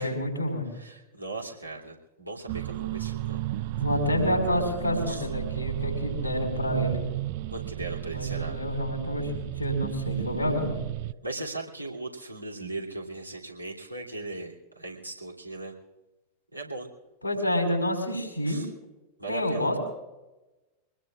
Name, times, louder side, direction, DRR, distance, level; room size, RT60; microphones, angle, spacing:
voice 1, 0.0-0.7 3.7-7.0 8.1-10.8 17.2-18.6 19.3-19.8, left 1 dB, 90° left, 2 dB, 4.9 m, -28 dB
voice 2, 0.7-3.4 5.1-5.3 7.5-8.6 11.2-15.7 16.5-16.9 18.4-18.7 19.2-19.7, right 2 dB, 90° right, -2 dB, 3.0 m, -38 dB
sound 1, 2.5-11.1, right 14 dB, 50° right, 0.4 m, -33 dB
24.5 x 20.0 x 2.5 m, 1.0 s
figure-of-eight pair, 90°, 0 cm